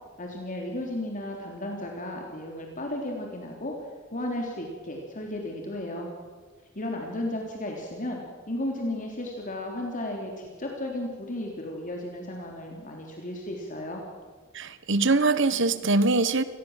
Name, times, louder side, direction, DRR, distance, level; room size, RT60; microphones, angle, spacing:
voice 1, 0.2-3.7 4.1-6.1 6.8-14.0, left 1 dB, 40° left, 1 dB, 3.6 m, -34 dB
voice 2, 14.5-16.4, right 3 dB, 65° right, 14 dB, 1.5 m, -23 dB
28.5 x 20.5 x 7.5 m, 1.5 s
head